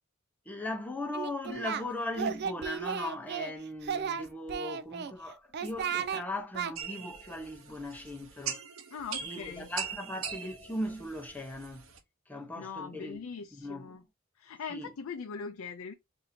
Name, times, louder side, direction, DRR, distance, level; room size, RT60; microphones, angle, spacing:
voice 1, 0.5-8.6 9.2-11.9 12.3-13.2 13.5-14.0 14.7-14.9, left 1 dB, 10° left, 0.8 m, -38 dB
Singing, 1.1-1.8 2.1-3.5 3.8-5.1 5.5-6.2 6.5-6.7, right 7 dB, 55° right, 0.4 m, -34 dB
sound 1, 6.7-12.0, right 7 dB, 85° right, 0.8 m, -41 dB
voice 2, 8.9-9.7 12.6-14.0 14.4-15.9, left 5 dB, 90° left, 0.4 m, -41 dB
2.7 x 2.7 x 4.1 m
head